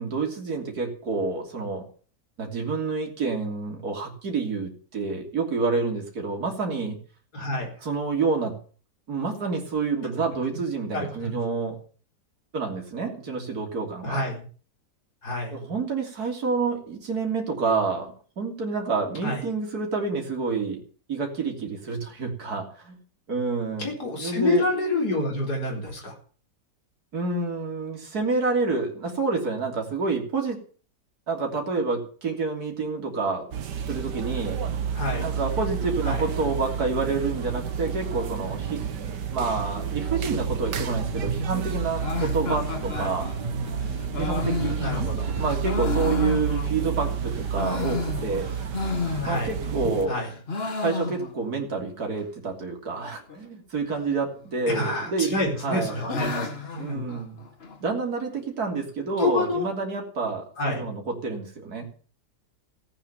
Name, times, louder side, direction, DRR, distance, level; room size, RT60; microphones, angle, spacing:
voice 1, 0.0-1.9 2.4-7.0 7.8-8.6 9.1-11.8 12.5-14.2 15.5-20.8 21.1-23.0 23.3-23.9 24.2-24.6 27.1-30.6 31.3-33.5 33.9-34.6 35.2-38.8 39.3-43.3 44.2-48.5 49.2-50.2 50.8-55.4 55.6-56.0 56.8-57.4 57.8-61.9, right 4 dB, 60° right, 1 dB, 3.6 m, -28 dB
voice 2, 7.3-7.7 10.9-11.4 14.0-14.4 15.2-15.6 19.2-19.5 23.8-26.1 34.9-35.3 36.0-36.2 42.9-43.1 44.7-45.4 49.2-49.6 50.1-50.3 54.7-56.5 56.7-57.1 59.2-59.7 60.6-60.9, left 2 dB, 65° left, 0 dB, 4.9 m, -28 dB
sound 1, 33.5-50.1, right 7 dB, 80° right, 1.9 m, -30 dB
sound 2, 40.3-45.6, right 2 dB, 35° right, 2.0 m, -34 dB
sound 3, 42.0-47.0 47.4-49.8 50.1-51.6 51.9-52.0 52.2-52.3 52.9-53.4 54.4-55.0 55.4-57.8, left 4 dB, 35° left, 1.8 m, -32 dB
16.0 x 9.1 x 8.8 m, 0.42 s
omnidirectional pair, 1.8 m